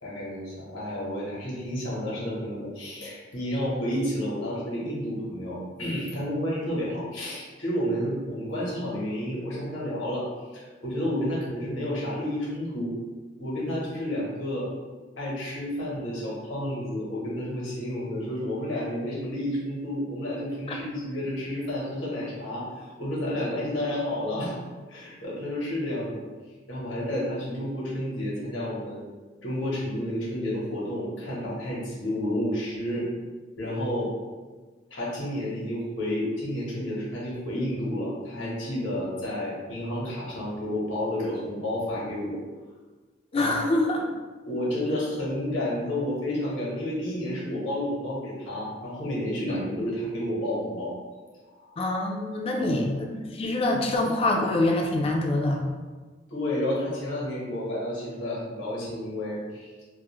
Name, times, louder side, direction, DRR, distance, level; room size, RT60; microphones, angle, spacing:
voice 1, 0.0-10.3 10.5-12.9 13.4-14.7 15.2-24.6 24.9-26.2 26.7-29.0 29.4-33.1 33.6-34.1 34.9-42.4 43.3-43.5 44.4-51.0 51.6-51.8 52.5-53.0 56.3-59.8, left 1 dB, 90° left, -6 dB, 0.9 m, -31 dB
voice 2, 43.3-44.0 49.5-49.6 51.8-53.1 53.3-55.7, left 2 dB, 30° left, 1 dB, 0.3 m, -25 dB
2.3 x 2.0 x 2.9 m, 1.4 s
head